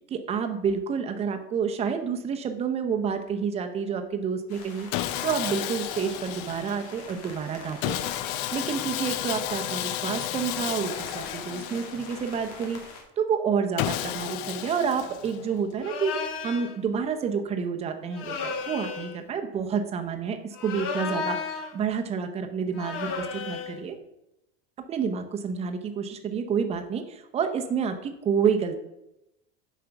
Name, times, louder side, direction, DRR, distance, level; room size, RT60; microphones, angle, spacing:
voice 1, 0.1-4.9 5.2-8.0 8.2-12.8 13.2-24.0 24.9-28.8, right 6 dB, 20° right, 6 dB, 0.7 m, -29 dB
sound 1, 4.5-13.0, left 3 dB, 90° left, 2.2 m, -44 dB
Sawing, 4.9-7.0 7.8-12.4 13.8-15.6, left 13 dB, 65° left, 0.5 m, -32 dB
sound 2, 15.8-16.7 18.1-19.2 20.5-21.8 22.8-23.8, left 5 dB, 45° left, 1.1 m, -33 dB
7.7 x 5.1 x 5.8 m, 0.88 s
cardioid pair, 165°, 30 cm